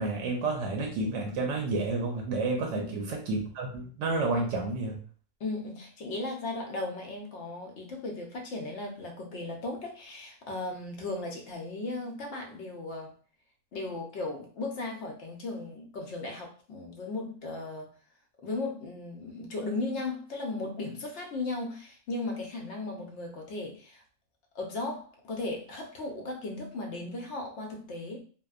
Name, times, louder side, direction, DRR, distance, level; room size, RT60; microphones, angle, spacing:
voice 1, 0.0-5.0, right 3 dB, 80° right, 1.0 m, -30 dB
voice 2, 2.7-3.2 4.3-4.5 5.4-13.1 13.7-17.9 18.4-24.0 24.5-28.2, left 2 dB, 75° left, 0.9 m, -36 dB
2.8 x 2.0 x 2.4 m
omnidirectional pair, 1.2 m